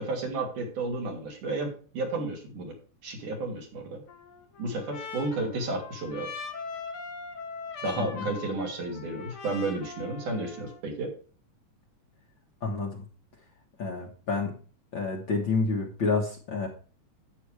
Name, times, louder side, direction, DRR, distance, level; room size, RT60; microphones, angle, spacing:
voice 1, 0.0-2.8 3.0-4.0 4.6-6.3 7.8-11.1, right 2 dB, 75° right, 1 dB, 4.2 m, -32 dB
Trumpet, 4.1-10.8, left 5 dB, 70° left, 3.8 m, -41 dB
voice 2, 12.6-13.0 13.8-14.5 14.9-16.7, left 4 dB, 50° left, 1 dB, 1.6 m, -29 dB
11.5 x 8.6 x 3.4 m, 0.39 s
omnidirectional pair, 3.6 m